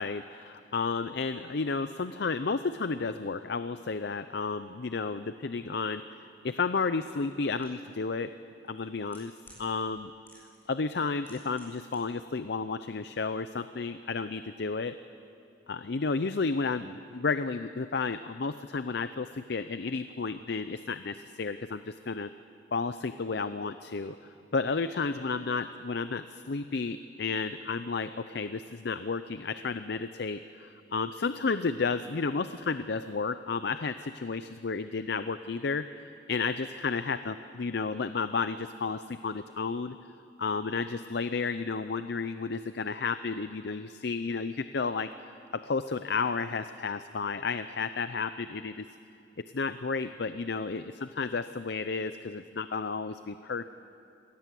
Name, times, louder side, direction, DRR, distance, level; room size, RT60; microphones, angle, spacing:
voice 1, 0.0-6.0 6.4-8.3 8.7-9.3 9.6-10.1 10.7-15.0 15.7-22.3 22.7-24.2 24.5-40.0 40.4-45.1 45.5-48.8 49.5-53.7, left 4 dB, 65° left, 12 dB, 0.6 m, -32 dB
sound 1, 7.6-7.7 8.7-9.6 10.3-10.7 10.9-12.0 12.2-12.3, left 1 dB, 10° left, 7.7 m, -55 dB
25.0 x 19.0 x 7.7 m, 2.6 s
head